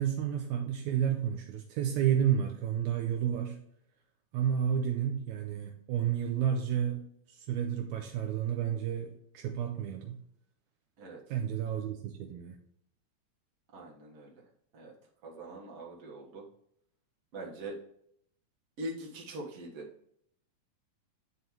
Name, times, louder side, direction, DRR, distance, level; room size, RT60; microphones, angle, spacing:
voice 1, 0.0-3.6 4.3-7.0 7.3-10.2 11.3-12.6, right 9 dB, 80° right, 3 dB, 1.8 m, -31 dB
voice 2, 13.7-14.4 14.7-14.9 15.2-16.5 17.3-17.8 18.8-19.9, right 1 dB, 50° right, -3 dB, 2.3 m, -42 dB
10.5 x 4.5 x 3.2 m, 0.71 s
omnidirectional pair, 4.0 m